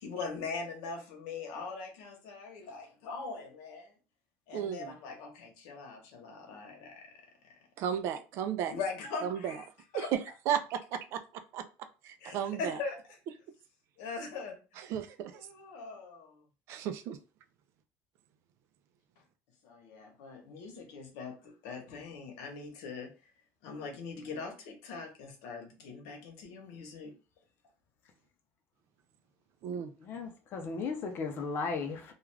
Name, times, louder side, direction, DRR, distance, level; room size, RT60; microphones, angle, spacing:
voice 1, 0.0-3.9 4.5-7.2 8.7-9.7 9.9-10.1 12.2-13.0 14.0-14.6 15.3-16.4 19.6-23.1 23.6-27.1, left 4 dB, 90° left, 0.9 m, -41 dB
voice 2, 4.5-4.9 7.8-8.7 9.2-9.5 9.9-10.2 10.5-11.2 11.5-12.8 14.8-15.5 16.7-17.2 29.6-29.9, right 9 dB, 55° right, 0.4 m, -34 dB
voice 3, 30.0-32.1, left 4 dB, 45° left, 0.6 m, -36 dB
2.4 x 2.3 x 3.2 m
cardioid pair, 150°, 5 cm